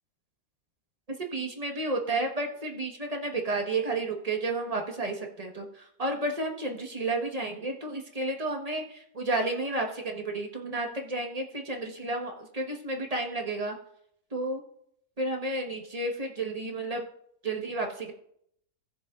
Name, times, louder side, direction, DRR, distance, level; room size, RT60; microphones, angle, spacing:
voice 1, 1.2-13.8 14.3-14.6 15.2-17.0 17.4-18.1, right 2 dB, 25° right, 2 dB, 1.2 m, -31 dB
18.5 x 6.8 x 2.4 m, 0.71 s
omnidirectional pair, 1.8 m